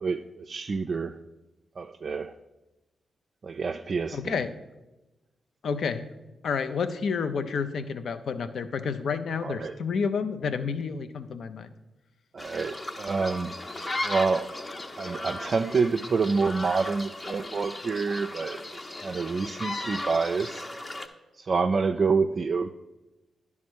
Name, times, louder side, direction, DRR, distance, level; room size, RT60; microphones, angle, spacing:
voice 1, 0.0-1.1 1.8-2.3 3.4-4.4 9.4-9.7 12.3-13.5 14.0-14.5 15.0-18.6 19.0-20.7 21.4-22.7, right 4 dB, 55° right, 5 dB, 0.3 m, -27 dB
voice 2, 4.1-4.5 5.6-6.1 6.4-11.7, left 5 dB, 70° left, 10 dB, 0.5 m, -30 dB
sound 1, 12.4-21.1, left 2 dB, 35° left, 0.8 m, -36 dB
10.5 x 3.6 x 6.2 m, 1.0 s
supercardioid pair, 45°, 0 cm